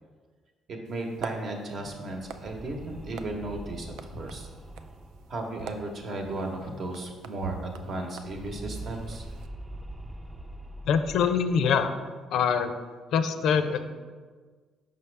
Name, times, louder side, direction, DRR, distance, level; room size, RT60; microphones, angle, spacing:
voice 1, 0.7-4.5 5.3-9.2, right 2 dB, 55° right, 2 dB, 1.0 m, -35 dB
sound 1, 0.8-9.5, right 7 dB, 85° right, 0.3 m, -45 dB
sound 2, 1.7-6.9 7.2-7.3 7.5-11.9, right 1 dB, 20° right, 0.4 m, -44 dB
voice 2, 10.8-11.9 12.3-12.7 13.1-13.8, left 6 dB, 75° left, 9 dB, 0.4 m, -24 dB
5.5 x 5.2 x 3.3 m, 1.5 s
cardioid pair, 85°, 0 cm